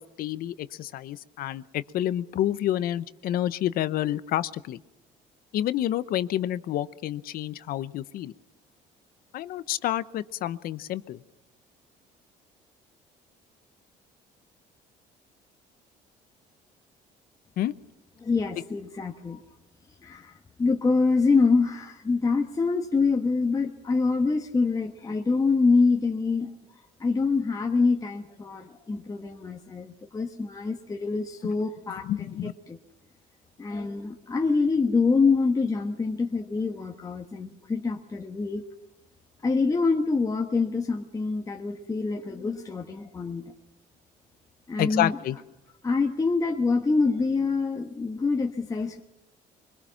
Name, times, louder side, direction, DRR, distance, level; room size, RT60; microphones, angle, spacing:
voice 1, 0.0-4.8 5.5-8.3 9.3-11.2 17.6-17.7 31.4-31.5 32.0-32.5 44.8-45.4, left 12 dB, 65° left, 16 dB, 0.9 m, -29 dB
voice 2, 18.2-19.4 20.0-20.3 20.6-26.5 27.0-32.1 32.7-32.8 33.6-38.6 39.4-43.4 44.7-45.2 45.8-49.0, left 4 dB, 20° left, 2 dB, 1.3 m, -25 dB
24.0 x 21.5 x 5.8 m, 1.0 s
cardioid pair, 120°, 16 cm